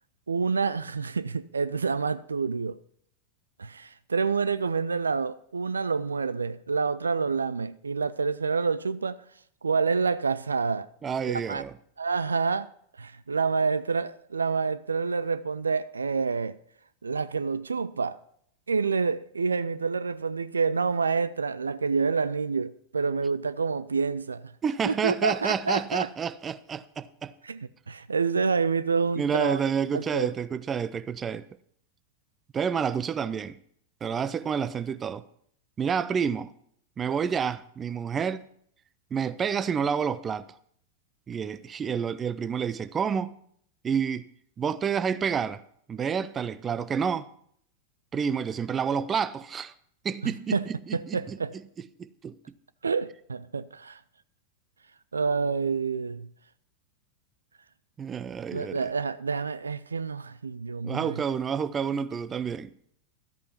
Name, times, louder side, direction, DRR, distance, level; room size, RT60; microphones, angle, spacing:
voice 1, 0.3-2.8 3.6-9.2 9.6-10.9 11.3-11.6 12.0-12.7 13.0-16.6 17.0-18.2 18.7-24.5 24.8-26.1 27.4-29.6 29.9-30.3 50.5-50.7 50.9-51.5 52.8-54.0 55.1-56.3 58.5-61.2, right 5 dB, 75° right, 0.4 m, -28 dB
voice 2, 11.0-11.7 24.6-27.3 29.2-31.5 32.5-33.6 34.0-35.3 35.8-36.5 37.0-38.4 39.1-40.5 41.3-43.4 43.8-44.3 44.6-45.6 45.9-47.3 48.1-49.7 50.0-51.6 52.0-52.4 58.0-58.8 60.8-62.7, right 7 dB, 20° right, 0.6 m, -29 dB
13.0 x 8.5 x 5.8 m
figure-of-eight pair, 90°, 0 cm